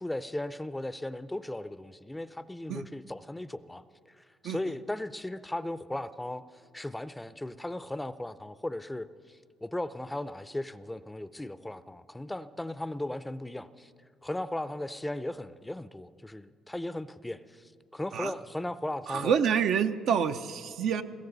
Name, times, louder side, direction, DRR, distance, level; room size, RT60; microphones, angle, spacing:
voice 1, 0.0-3.8 4.1-6.4 6.7-13.9 14.2-19.4, left 1 dB, 10° left, 14 dB, 0.5 m, -37 dB
voice 2, 19.1-21.0, right 7 dB, 70° right, 8 dB, 0.6 m, -27 dB
20.0 x 16.5 x 4.0 m, 2.2 s
supercardioid pair, 80°, 0 cm